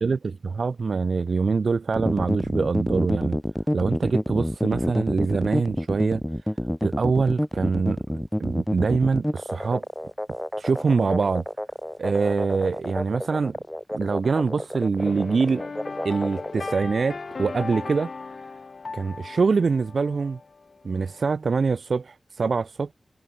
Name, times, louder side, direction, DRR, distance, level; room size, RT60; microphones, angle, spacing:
voice 1, 0.6-3.4 3.7-6.2 6.8-8.0 8.4-9.8 10.6-11.4 12.0-13.6 13.9-15.6 16.0-18.1 18.9-20.4 20.8-22.9, right 4 dB, 70° right, 0.4 m, -24 dB
sound 1, 1.9-16.7, equal, 5° left, 0.5 m, -28 dB
sound 2, 15.0-21.3, left 4 dB, 55° left, 1.1 m, -37 dB
wide cardioid pair, 95°, 0 cm